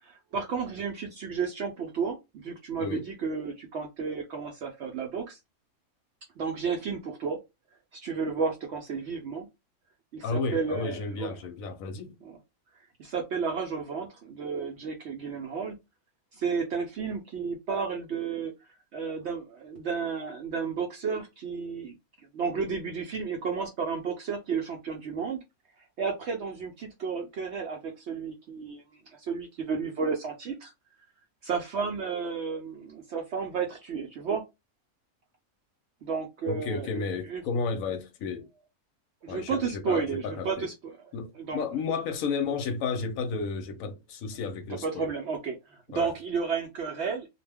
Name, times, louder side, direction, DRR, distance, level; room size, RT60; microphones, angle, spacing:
voice 1, 0.0-5.4 6.4-7.4 7.9-9.5 10.1-11.3 12.2-12.4 13.0-15.8 16.3-18.5 18.9-21.9 22.3-25.4 26.0-30.7 31.4-34.4 36.0-36.9 37.3-37.4 39.2-41.0 41.3-41.6 44.8-47.3, right 5 dB, 65° right, 0.7 m, -32 dB
voice 2, 10.2-12.2 36.5-38.5 39.3-40.7 41.1-45.1 45.9-46.1, left 4 dB, 70° left, 0.9 m, -32 dB
2.4 x 2.1 x 3.3 m
omnidirectional pair, 1.6 m